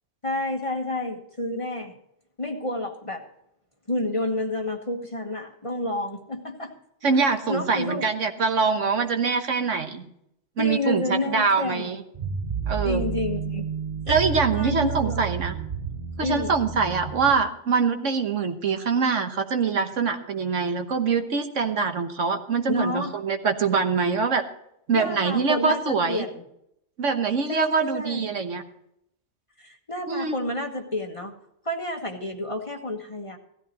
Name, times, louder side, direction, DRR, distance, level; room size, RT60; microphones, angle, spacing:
voice 1, 0.2-1.9 2.4-3.3 3.9-6.7 7.1-8.1 10.6-11.9 12.8-13.7 14.1-14.2 14.5-15.3 16.2-16.5 22.7-23.2 24.9-26.4 27.5-28.2 29.6-31.3 31.6-33.4, left 2 dB, 25° left, 3 dB, 1.3 m, -30 dB
voice 2, 7.0-10.0 10.6-12.0 12.7-13.0 14.1-15.5 16.2-24.4 24.9-26.2 27.0-28.6 30.1-30.4, right 5 dB, 65° right, 6 dB, 1.5 m, -24 dB
sound 1, 12.1-17.3, right 6 dB, 40° right, 0.9 m, -31 dB
16.0 x 13.5 x 3.0 m, 0.76 s
omnidirectional pair, 1.4 m